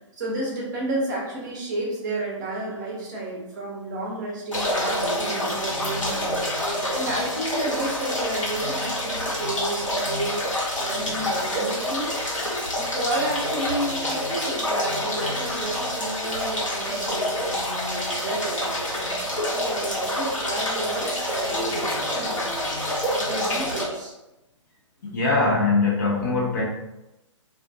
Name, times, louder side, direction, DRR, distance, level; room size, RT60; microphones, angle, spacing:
voice 1, 0.2-6.3 6.9-12.1 12.7-22.3 23.1-24.1, right 1 dB, 35° right, -4 dB, 0.8 m, -31 dB
sound 1, 4.5-23.8, left 1 dB, 75° left, 1.1 m, -27 dB
voice 2, 25.0-26.6, left 3 dB, 40° left, -4 dB, 0.7 m, -22 dB
2.4 x 2.4 x 2.4 m, 0.95 s
figure-of-eight pair, 130°, 16 cm